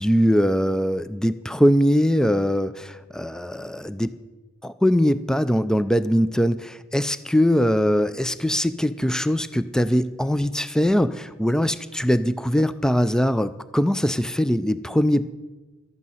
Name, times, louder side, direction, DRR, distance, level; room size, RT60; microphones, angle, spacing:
voice 1, 0.0-4.1 4.6-15.3, equal, 5° left, 13 dB, 0.3 m, -21 dB
12.0 x 9.6 x 7.7 m, 1.2 s
head